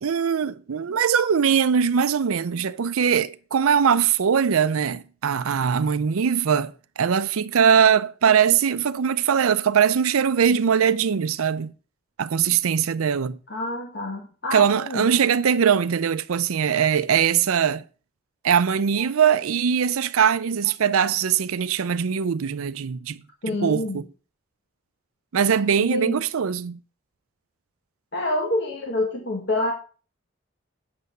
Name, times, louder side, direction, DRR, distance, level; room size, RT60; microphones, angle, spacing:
voice 1, 0.0-11.7 12.2-13.4 14.5-17.8 18.4-23.2 23.6-24.0 25.3-26.8, right 7 dB, 80° right, 0.5 m, -21 dB
voice 2, 13.5-15.1 23.4-24.0 25.8-26.2 28.1-29.7, left 1 dB, 55° left, 1.8 m, -27 dB
8.6 x 6.8 x 6.7 m
head